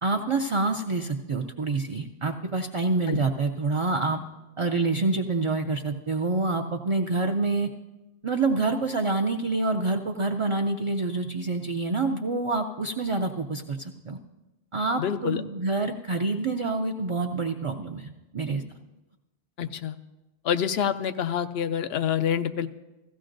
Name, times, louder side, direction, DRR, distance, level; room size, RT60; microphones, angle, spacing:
voice 1, 0.0-4.2 4.6-7.7 8.2-14.2 14.7-18.6, right 3 dB, 40° right, 3 dB, 0.5 m, -27 dB
voice 2, 15.0-15.4 19.6-20.0 20.4-22.7, left 8 dB, 75° left, 10 dB, 0.9 m, -27 dB
16.0 x 15.0 x 2.6 m, 1.1 s
omnidirectional pair, 1.1 m